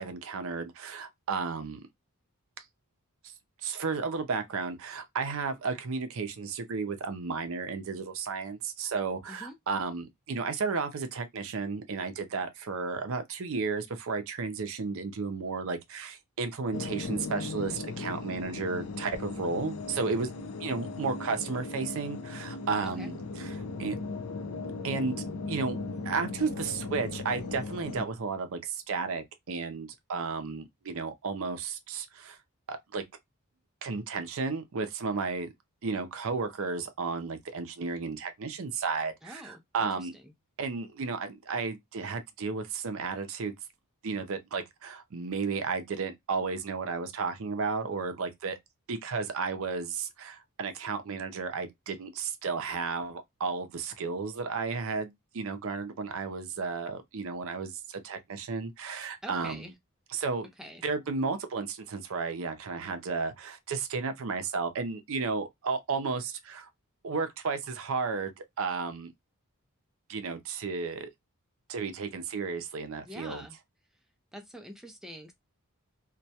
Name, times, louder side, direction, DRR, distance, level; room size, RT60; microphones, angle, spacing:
voice 1, 0.0-1.8 3.6-20.3 20.6-24.0 24.8-25.1 25.5-25.8 26.0-32.4 32.7-33.0 33.8-35.5 35.8-40.1 40.6-43.6 44.0-48.6 48.9-59.7 60.1-60.5 60.8-66.7 67.0-69.1 70.1-71.1 71.7-73.5, right 4 dB, 60° right, 0.5 m, -33 dB
sound 1, 16.7-28.0, left 3 dB, 70° left, 0.4 m, -38 dB
voice 2, 39.2-40.3 59.2-59.7 60.6-60.8 73.0-73.6 74.3-75.3, equal, ahead, 0.3 m, -45 dB
2.2 x 2.1 x 2.7 m
head